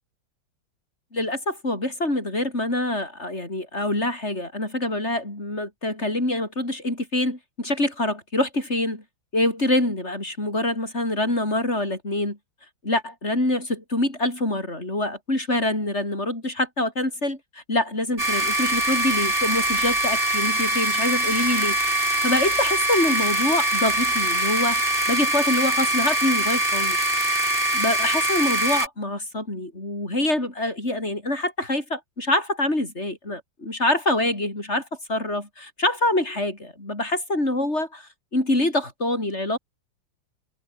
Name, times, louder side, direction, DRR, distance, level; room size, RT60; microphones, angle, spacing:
voice 1, 1.1-9.0 9.3-12.4 12.8-27.0 27.2-39.6, left 1 dB, 30° left, 8.2 m, -25 dB
sound 1, 18.2-28.9, right 1 dB, 25° right, 7.8 m, -23 dB
omnidirectional pair, 2.1 m